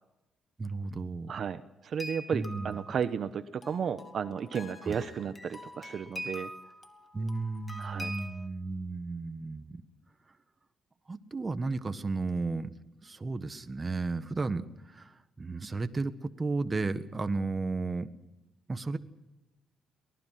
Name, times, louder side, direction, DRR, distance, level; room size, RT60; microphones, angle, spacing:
voice 1, 0.6-1.3 2.3-2.8 4.8-5.0 7.1-9.8 11.1-12.7 13.0-18.1 18.7-19.0, right 3 dB, 25° right, 10 dB, 1.5 m, -34 dB
voice 2, 1.3-6.5 7.8-8.1, right 7 dB, 55° right, 11 dB, 1.0 m, -33 dB
sound 1, 2.0-8.5, equal, 25° left, 2.5 m, -44 dB
24.0 x 19.0 x 5.9 m, 0.96 s
cardioid pair, 90°, 0 cm